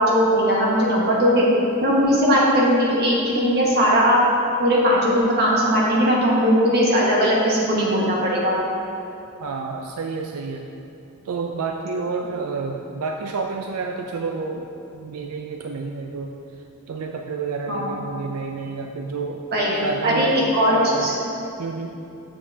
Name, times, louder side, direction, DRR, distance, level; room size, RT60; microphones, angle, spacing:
voice 1, 0.0-1.5 1.8-4.2 4.6-8.5 17.7-17.9 19.5-19.7 20.0-21.1, equal, 45° right, -5 dB, 1.5 m, -19 dB
voice 2, 9.4-10.7 11.2-16.3 16.9-19.5 19.7-20.4 20.7-21.1 21.6-21.9, right 4 dB, 85° right, 3 dB, 0.4 m, -29 dB
8.4 x 7.1 x 2.8 m, 2.7 s
head